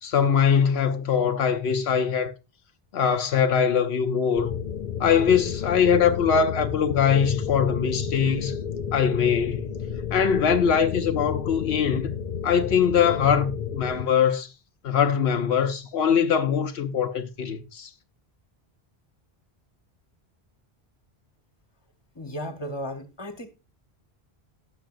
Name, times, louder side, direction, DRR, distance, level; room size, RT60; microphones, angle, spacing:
voice 1, 0.0-2.3 2.9-4.6 5.0-8.6 8.9-9.8 10.1-12.1 12.4-14.5 14.8-17.9, left 7 dB, 80° left, 0.9 m, -22 dB
sound 1, 4.4-14.1, left 7 dB, 50° left, 0.6 m, -31 dB
voice 2, 22.1-23.5, equal, 25° left, 1.3 m, -34 dB
18.0 x 6.3 x 2.5 m
omnidirectional pair, 1.1 m